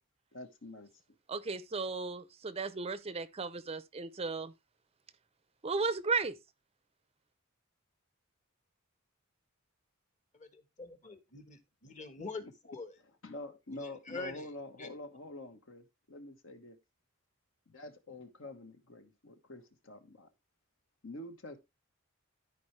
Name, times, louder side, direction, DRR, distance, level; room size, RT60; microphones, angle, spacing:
voice 1, 0.3-0.9 12.4-12.5 13.2-16.8 17.7-20.3 21.0-21.6, left 2 dB, 65° left, 1.4 m, -47 dB
voice 2, 1.3-4.5 5.6-6.4, right 4 dB, 30° right, 0.6 m, -35 dB
voice 3, 10.3-12.9 13.8-14.5 14.8-14.9, left 3 dB, 35° left, 1.4 m, -45 dB
13.5 x 4.8 x 3.2 m
head